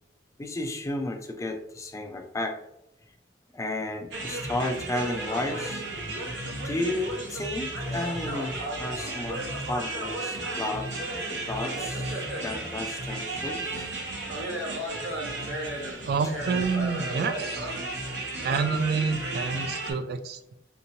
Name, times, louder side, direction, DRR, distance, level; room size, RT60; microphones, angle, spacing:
voice 1, 0.4-2.6 3.5-5.8 6.6-10.9 11.5-13.9 15.1-15.2, left 2 dB, 15° left, 5 dB, 0.4 m, -33 dB
sound 1, 4.1-19.9, right 2 dB, 75° right, 0.9 m, -33 dB
voice 2, 16.1-17.7 18.4-20.6, right 5 dB, 60° right, 10 dB, 0.3 m, -28 dB
3.4 x 2.8 x 2.7 m, 0.81 s
head